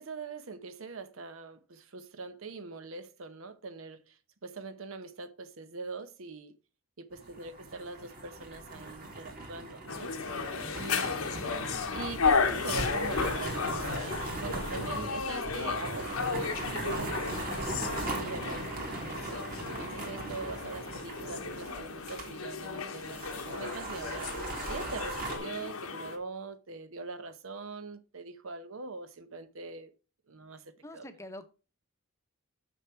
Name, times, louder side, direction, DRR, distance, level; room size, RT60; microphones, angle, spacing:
voice 1, 0.0-6.5 7.0-10.1 10.8-11.2 11.7-19.4 19.8-29.9 30.3-31.1, right 3 dB, 70° right, 0.9 m, -42 dB
sound 1, 7.1-22.3 22.6-22.7 23.0-25.4, right 2 dB, 40° right, 2.3 m, -39 dB
sound 2, 9.9-26.2, left 5 dB, 90° left, 1.1 m, -34 dB
voice 2, 10.6-11.5 30.8-31.5, left 1 dB, 15° left, 0.8 m, -47 dB
6.5 x 6.2 x 4.4 m
head